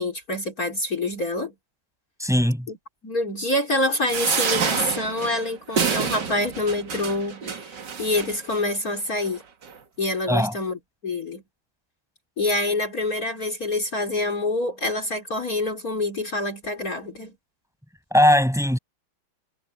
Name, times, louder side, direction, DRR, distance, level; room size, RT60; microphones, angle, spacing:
voice 1, 0.0-1.5 2.7-2.8 3.0-9.4 10.0-11.4 12.4-17.3, left 2 dB, 40° left, 4.2 m, -26 dB
voice 2, 2.2-2.7 10.3-10.5 18.1-18.8, equal, ahead, 5.8 m, -19 dB
sound 1, 4.1-8.6 9.3-9.4 9.6-9.7, right 6 dB, 55° right, 2.4 m, -27 dB
omnidirectional pair, 2.3 m